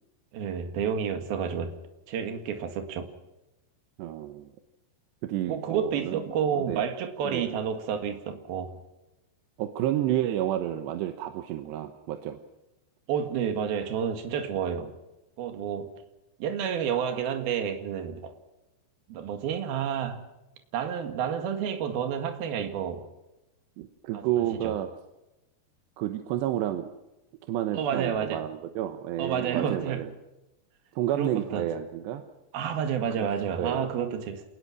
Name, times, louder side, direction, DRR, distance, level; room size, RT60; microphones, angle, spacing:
voice 1, 0.3-1.7 2.1-3.1 5.5-8.8 13.1-14.9 15.4-15.9 16.4-18.3 19.1-20.2 20.7-23.1 24.1-24.2 24.5-24.7 27.7-28.4 29.2-30.0 31.1-31.7 32.5-34.4, right 8 dB, 65° right, 6 dB, 3.6 m, -30 dB
voice 2, 4.0-4.5 5.2-6.2 6.5-6.8 7.2-7.5 9.6-12.4 23.8-24.9 26.0-26.9 27.5-30.1 31.0-32.2 33.2-33.3 33.5-33.9, right 12 dB, 80° right, 7 dB, 3.2 m, -30 dB
27.5 x 20.0 x 6.2 m, 0.98 s
omnidirectional pair, 5.0 m